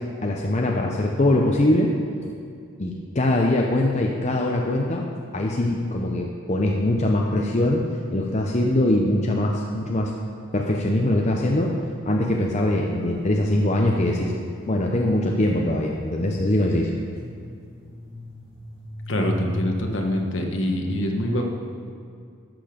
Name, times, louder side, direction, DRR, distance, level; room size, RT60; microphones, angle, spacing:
voice 1, 0.2-1.9 2.2-2.3 2.8-5.0 5.3-7.8 8.1-10.1 10.5-11.8 12.1-14.4 14.7-16.9, left 1 dB, 35° left, 0 dB, 0.6 m, -22 dB
sound 1, 12.6-20.3, equal, 30° right, 2.3 m, -39 dB
voice 2, 19.1-21.5, left 1 dB, 65° left, 2 dB, 1.2 m, -25 dB
12.0 x 6.8 x 5.1 m, 2.3 s
head